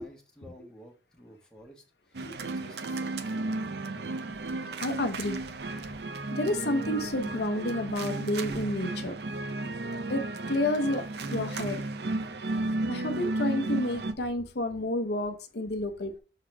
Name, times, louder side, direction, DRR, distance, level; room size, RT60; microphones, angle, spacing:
voice 1, 0.0-3.6, equal, 5° left, 0 dB, 1.3 m, -52 dB
sound 1, 2.1-14.1, right 2 dB, 65° right, 0.6 m, -33 dB
voice 2, 4.8-5.4 6.3-9.2 10.1-11.8 12.9-16.2, left 1 dB, 65° left, 7 dB, 0.8 m, -30 dB
6.4 x 3.9 x 4.6 m, 0.32 s
head